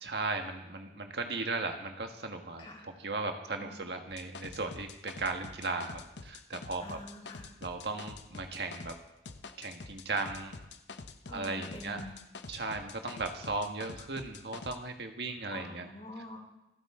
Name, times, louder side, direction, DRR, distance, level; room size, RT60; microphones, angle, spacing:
voice 1, 0.0-7.0 7.6-8.9 9.6-10.5 11.3-12.0 12.5-15.9, right 3 dB, 70° right, 4 dB, 1.6 m, -36 dB
voice 2, 3.6-4.0 6.8-7.4 11.2-12.2 15.5-16.4, left 1 dB, 35° left, -2 dB, 4.4 m, -46 dB
sound 1, 4.1-9.0 9.3-14.8, left 4 dB, 85° left, 0.8 m, -47 dB
27.5 x 9.2 x 3.8 m, 0.90 s
head